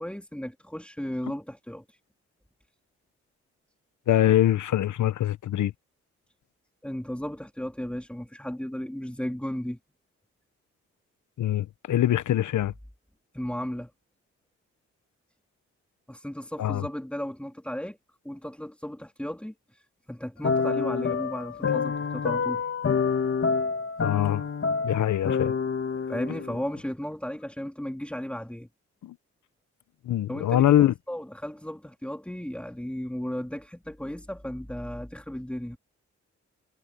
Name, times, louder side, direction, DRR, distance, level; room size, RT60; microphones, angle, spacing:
voice 1, 0.0-2.0 6.8-9.8 13.3-13.9 16.1-18.0 18.2-22.6 26.1-28.7 30.3-35.8, equal, 5° left, 3.0 m, -35 dB
voice 2, 4.1-5.7 11.4-12.7 16.6-16.8 24.0-24.4 24.8-25.5 29.0-29.2 30.0-30.9, left 12 dB, 75° left, 1.2 m, -23 dB
sound 1, 20.4-26.8, left 5 dB, 45° left, 1.6 m, -27 dB
supercardioid pair, 55°, 30 cm